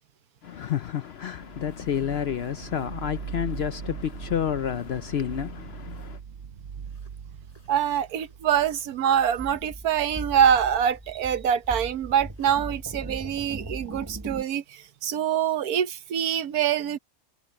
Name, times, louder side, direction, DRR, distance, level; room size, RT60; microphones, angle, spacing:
voice 1, 0.4-6.2, left 9 dB, 60° left, 0.7 m, -30 dB
sound 1, 1.4-11.2, right 7 dB, 50° right, 0.9 m, -41 dB
sound 2, 1.7-4.3 4.7-6.2 6.8-9.6 9.9-10.0 10.7-11.0 11.6-11.9 12.3-12.6, left 1 dB, 25° left, 7.7 m, -63 dB
voice 2, 7.7-17.0, right 9 dB, 85° right, 1.4 m, -25 dB
sound 3, 9.4-14.4, right 2 dB, 15° right, 1.1 m, -38 dB
omnidirectional pair, 1.5 m